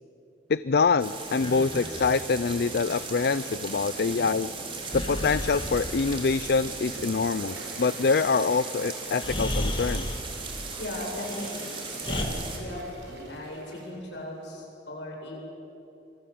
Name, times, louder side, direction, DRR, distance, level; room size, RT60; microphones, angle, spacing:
voice 1, 0.5-4.5 4.9-10.1, left 4 dB, 60° left, 15 dB, 0.5 m, -25 dB
sound 1, 1.0-12.6, right 4 dB, 30° right, 3.8 m, -38 dB
Breathing, 1.3-2.2 4.9-6.4 8.5-8.6 9.1-10.3 11.1-12.2, left 1 dB, 30° left, 2.4 m, -33 dB
sound 2, 7.2-14.4, right 2 dB, 65° right, 4.8 m, -49 dB
voice 2, 10.8-11.7 12.0-15.4, left 1 dB, 80° left, -1 dB, 7.9 m, -37 dB
26.5 x 22.0 x 8.7 m, 2.8 s
head